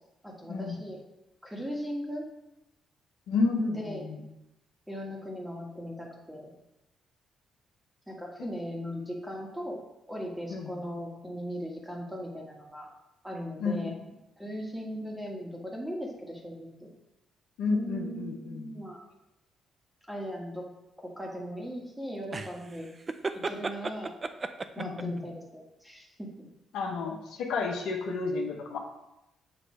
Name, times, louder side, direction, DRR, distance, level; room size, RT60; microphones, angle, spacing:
voice 1, 0.2-1.0 1.4-2.2 3.7-4.1 4.9-6.5 8.1-9.8 10.1-12.9 13.2-13.9 14.4-16.9 17.7-19.0 20.1-20.6 21.0-22.9 23.3-24.1 24.7-26.3, equal, 5° right, -2 dB, 1.6 m, -38 dB
voice 2, 3.3-4.2 10.5-10.7 13.6-13.9 17.6-18.7 24.8-25.2 26.7-28.8, left 4 dB, 85° left, 1 dB, 0.9 m, -31 dB
sound 1, 22.3-25.2, right 3 dB, 30° right, 0.4 m, -34 dB
7.5 x 3.1 x 4.6 m, 0.91 s
cardioid pair, 80°, 0 cm